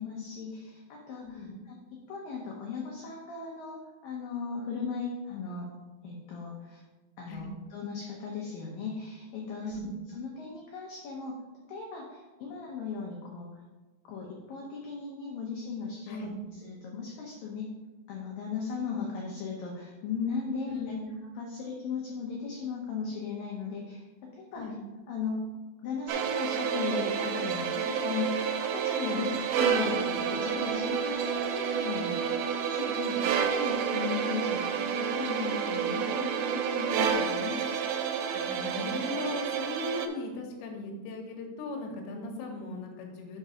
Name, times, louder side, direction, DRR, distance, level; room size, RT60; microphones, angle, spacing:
voice 1, 0.0-5.7 6.0-6.8 7.2-9.8 10.1-11.4 11.7-13.6 14.0-16.2 16.6-17.7 18.1-20.8 21.3-24.7 25.1-25.4 25.8-32.2 32.5-32.9 33.4-37.6, left 5 dB, 85° left, -2 dB, 1.9 m, -37 dB
voice 2, 20.7-21.2 24.5-24.8 29.1-29.3 32.7-33.2 38.3-43.4, left 2 dB, 70° left, 1 dB, 2.8 m, -38 dB
sound 1, 26.1-40.1, right 7 dB, 80° right, 2.8 m, -30 dB
6.0 x 5.0 x 5.5 m, 1.2 s
omnidirectional pair, 5.3 m